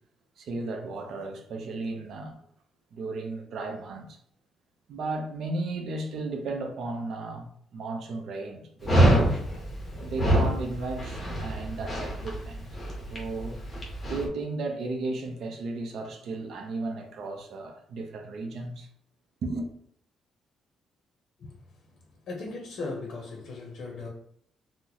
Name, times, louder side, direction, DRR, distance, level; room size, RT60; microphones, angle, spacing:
voice 1, 0.4-2.4 2.9-4.2 4.9-9.4 10.0-12.7 13.1-13.6 14.0-18.9 19.4-19.7, right 3 dB, 55° right, 0.5 m, -34 dB
Dog, 8.8-14.2, right 1 dB, 15° left, 0.7 m, -25 dB
voice 2, 22.3-24.1, left 3 dB, 50° left, 0.6 m, -37 dB
2.9 x 2.0 x 3.8 m
cardioid pair, 180°, 0 cm